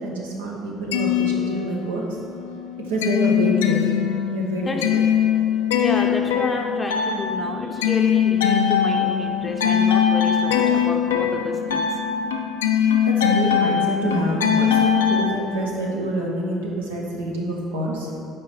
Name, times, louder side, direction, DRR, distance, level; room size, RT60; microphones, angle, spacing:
voice 1, 0.0-2.2 2.8-3.8 4.3-5.0 7.6-7.7 12.7-18.1, right 1 dB, 85° right, -2 dB, 0.8 m, -27 dB
sound 1, 0.7-2.1 2.5-15.3, left 8 dB, 90° left, 0.4 m, -21 dB
voice 2, 4.7-5.0 5.7-11.9, left 2 dB, 25° left, 1 dB, 0.6 m, -30 dB
4.8 x 4.4 x 4.8 m, 2.5 s
hypercardioid pair, 60°, 0 cm